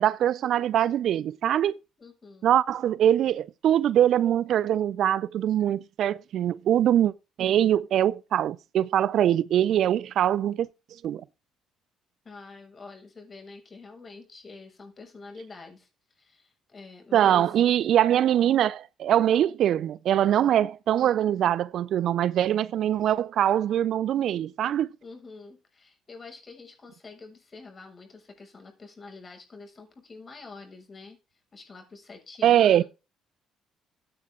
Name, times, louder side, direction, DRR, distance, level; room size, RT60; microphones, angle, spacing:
voice 1, 0.0-1.7 2.4-7.1 7.4-10.7 11.0-11.2 17.1-24.9 32.4-32.8, right 11 dB, 65° right, 0.6 m, -23 dB
voice 2, 2.0-2.6 12.2-15.9 16.1-17.8 25.0-31.2 31.5-32.9, left 3 dB, 35° left, 6.7 m, -46 dB
15.5 x 8.9 x 3.8 m
supercardioid pair, 70°, 0 cm